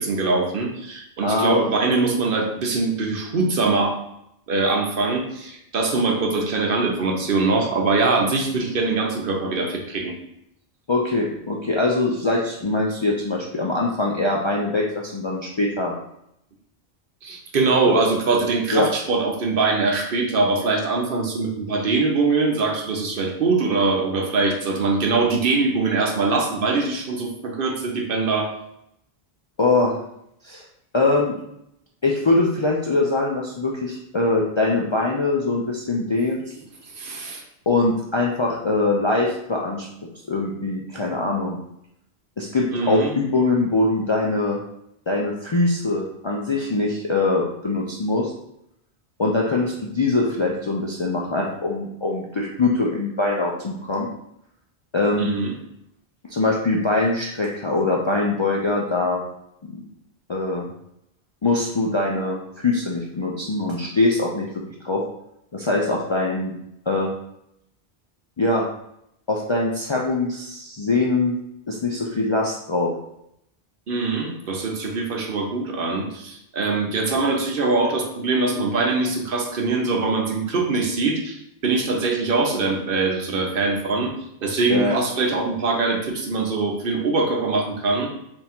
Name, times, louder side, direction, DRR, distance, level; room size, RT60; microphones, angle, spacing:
voice 1, 0.0-4.0 4.5-10.1 17.2-28.5 37.0-37.4 42.7-43.1 55.2-55.5 73.9-84.1 84.4-88.1, right 3 dB, 60° right, 1 dB, 0.9 m, -22 dB
voice 2, 1.2-1.6 10.9-15.9 18.7-18.9 29.6-29.9 30.4-30.7 30.9-31.4 32.0-36.4 37.7-39.9 40.3-41.6 42.4-44.6 45.1-48.3 49.2-54.1 54.9-55.3 56.3-59.2 60.3-60.7 61.4-64.5 64.8-65.0 65.5-66.5 66.9-67.1 68.4-68.6 69.3-71.4 71.7-72.9 84.7-85.0, left 2 dB, 45° left, -2 dB, 0.4 m, -22 dB
3.6 x 2.8 x 4.2 m, 0.77 s
omnidirectional pair, 1.0 m